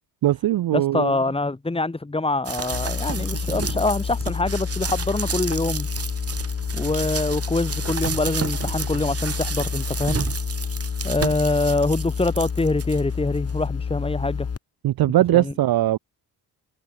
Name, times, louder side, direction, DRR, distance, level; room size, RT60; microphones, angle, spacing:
voice 1, 0.2-1.2 14.8-16.0, right 13 dB, 70° right, 0.9 m, -20 dB
voice 2, 0.7-5.9 6.7-10.2 11.0-14.5 15.3-15.5, left 2 dB, 15° left, 1.6 m, -25 dB
sound 1, 2.4-13.0 13.5-13.6, right 6 dB, 40° right, 1.4 m, -31 dB
sound 2, 2.7-14.6, left 6 dB, 40° left, 1.6 m, -29 dB
supercardioid pair, 60°, 38 cm